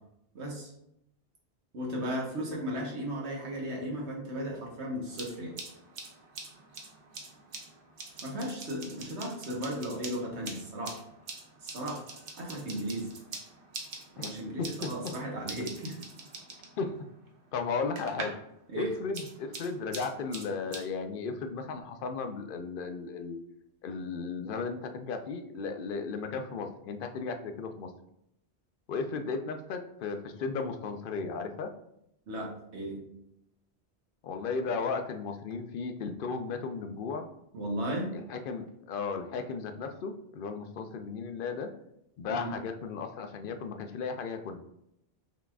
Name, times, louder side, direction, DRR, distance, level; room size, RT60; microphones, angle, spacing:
voice 1, 0.3-0.7 1.7-5.5 8.2-11.0 11.6-12.0 12.4-13.1 14.1-16.0 18.7-18.9 32.3-33.0 37.5-38.1 42.3-42.5, equal, 90° right, -1 dB, 1.5 m, -35 dB
sound 1, 5.1-18.5 18.8-20.8, right 3 dB, 55° right, 0.9 m, -45 dB
voice 2, 14.6-15.1 16.8-17.1 17.5-18.3 18.7-23.4 23.8-27.9 28.9-31.7 34.2-37.3 38.1-41.7 42.2-44.6, left 4 dB, 60° left, 7 dB, 0.6 m, -35 dB
5.7 x 3.5 x 2.4 m, 0.79 s
omnidirectional pair, 1.1 m